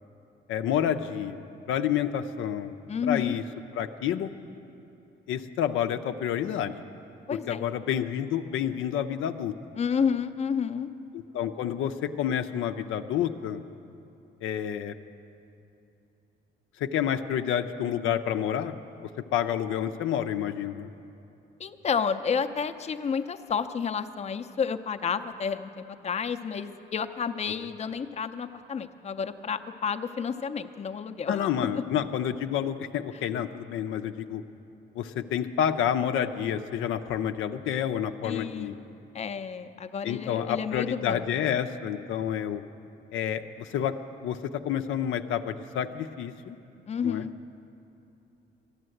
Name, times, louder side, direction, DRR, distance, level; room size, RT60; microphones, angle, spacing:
voice 1, 0.5-1.4 1.7-2.7 3.0-3.4 3.7-4.3 5.3-6.7 7.5-9.5 11.1-13.6 14.4-14.9 16.8-18.7 19.3-20.9 31.3-34.4 35.0-38.7 40.0-42.6 43.1-44.0 44.2-46.6 47.0-47.2, left 9 dB, 85° left, 7 dB, 0.6 m, -29 dB
voice 2, 2.9-3.3 7.3-7.7 9.8-10.9 21.6-31.8 38.2-38.8 39.1-41.3 46.9-47.3, left 6 dB, 35° left, 8 dB, 0.6 m, -30 dB
13.5 x 11.0 x 7.8 m, 2.8 s
cardioid pair, 90°, 20 cm